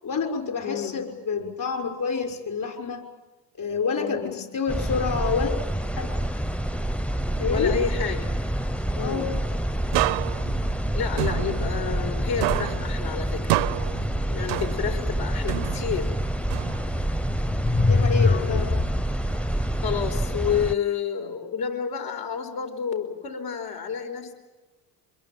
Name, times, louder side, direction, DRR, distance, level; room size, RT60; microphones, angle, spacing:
voice 1, 0.0-3.0 3.6-5.5 6.0-6.1 7.4-7.7 9.0-9.4 14.7-15.0 17.9-18.8, left 5 dB, 50° left, 4 dB, 6.1 m, -28 dB
voice 2, 0.6-1.0 4.0-4.4 7.5-8.4 8.9-9.4 10.9-13.6 14.3-16.1 19.8-24.3, left 7 dB, 70° left, 5 dB, 4.8 m, -30 dB
sound 1, 4.7-20.7, right 1 dB, 5° left, 0.8 m, -28 dB
sound 2, 9.9-12.1 12.4-15.1 15.5-17.1, right 19 dB, 75° right, 0.8 m, -29 dB
sound 3, 11.5-13.1 16.2-16.3 17.2-19.0, left 3 dB, 25° left, 1.1 m, -25 dB
25.5 x 22.0 x 9.1 m, 1.2 s
supercardioid pair, 75°, 42 cm